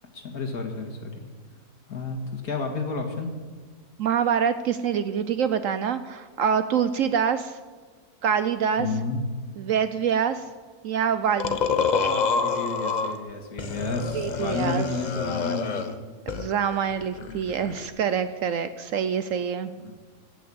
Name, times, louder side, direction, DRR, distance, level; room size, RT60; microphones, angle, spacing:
voice 1, 0.1-1.3 1.9-3.4 8.8-9.2 11.9-16.0 17.2-17.4 19.8-19.9, left 3 dB, 70° left, 2 dB, 2.3 m, -31 dB
voice 2, 4.0-7.6 8.2-8.9 9.6-10.4 10.8-11.9 14.1-14.9 16.3-19.7, right 7 dB, 65° right, 11 dB, 0.9 m, -25 dB
sound 1, 11.4-13.2 13.6-16.0 16.3-17.9, left 5 dB, 40° left, 0.6 m, -27 dB
16.0 x 6.3 x 8.6 m, 1.5 s
omnidirectional pair, 1.7 m